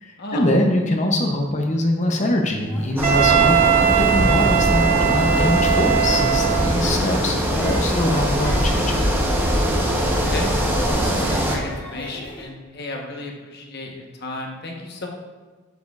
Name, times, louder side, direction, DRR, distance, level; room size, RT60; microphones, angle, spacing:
voice 1, 0.0-9.1, left 1 dB, 35° left, 2 dB, 0.6 m, -23 dB
sound 1, 2.5-12.4, equal, 10° left, 2.0 m, -39 dB
sound 2, 3.0-11.6, equal, 10° right, 0.8 m, -21 dB
Wind instrument woodwind instrument, 3.0-6.9, right 10 dB, 35° right, 0.6 m, -20 dB
voice 2, 10.1-10.5 10.8-15.1, left 2 dB, 50° left, 1 dB, 1.0 m, -33 dB
7.9 x 7.4 x 2.4 m, 1.3 s
head